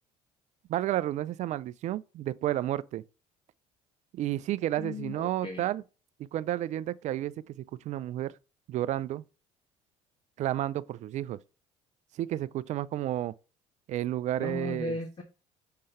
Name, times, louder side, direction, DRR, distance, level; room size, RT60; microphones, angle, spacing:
voice 1, 0.7-3.0 4.1-5.8 6.2-7.6 7.8-8.3 8.7-9.2 10.4-11.4 12.2-13.3 13.9-15.0, right 13 dB, 55° right, 0.5 m, -31 dB
voice 2, 4.8-5.7 14.4-15.2, left 3 dB, 35° left, 1.4 m, -36 dB
6.5 x 3.8 x 4.3 m
supercardioid pair, 75°, 14 cm